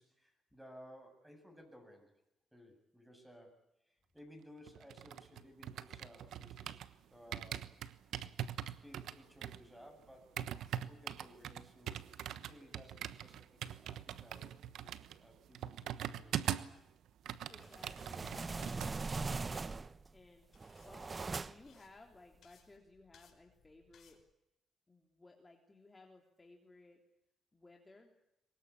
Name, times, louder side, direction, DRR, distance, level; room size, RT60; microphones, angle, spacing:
voice 1, 0.0-2.2 2.5-6.8 7.1-8.0 8.8-10.4 10.7-16.4, equal, 5° right, 5 dB, 7.8 m, -58 dB
sound 1, 4.7-7.0 7.3-16.8 17.1-18.9 19.2-19.5, right 10 dB, 80° right, 1.1 m, -42 dB
voice 2, 17.5-20.5 20.8-24.2 24.9-27.0 27.5-28.1, left 2 dB, 20° left, 2 dB, 3.4 m, -60 dB
sound 2, 17.6-24.2, left 7 dB, 60° left, 5.2 m, -69 dB
sound 3, 17.6-20.1 20.5-21.8, right 4 dB, 30° right, 0.8 m, -41 dB
23.5 x 20.5 x 8.5 m, 0.85 s
cardioid pair, 90°, 0 cm